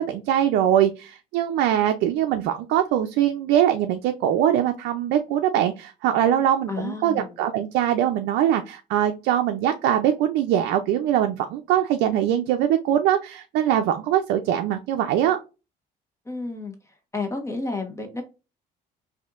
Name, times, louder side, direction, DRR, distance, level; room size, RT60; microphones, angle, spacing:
voice 1, 0.0-15.4, right 11 dB, 85° right, 5 dB, 0.4 m, -22 dB
voice 2, 6.7-7.4 16.2-16.7 17.1-18.2, left 3 dB, 15° left, 3 dB, 1.2 m, -31 dB
4.2 x 2.7 x 2.4 m, 0.29 s
cardioid pair, 110°, 17 cm